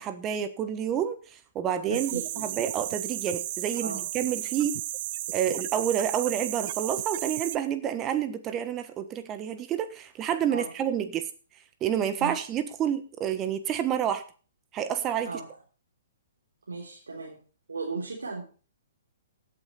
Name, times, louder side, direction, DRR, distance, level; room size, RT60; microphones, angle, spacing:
voice 1, 0.0-4.8 5.3-11.3 11.8-14.2 14.7-15.4, right 9 dB, 25° right, 10 dB, 1.3 m, -29 dB
sound 1, 1.9-7.6, right 15 dB, 45° right, 0.5 m, -34 dB
voice 2, 1.9-2.4 3.8-4.0 10.5-10.7 12.2-12.4 15.2-15.6 16.7-17.4 17.7-18.4, right 4 dB, 80° right, -3 dB, 3.5 m, -36 dB
16.0 x 8.5 x 4.2 m, 0.38 s
hypercardioid pair, 125°, 0 cm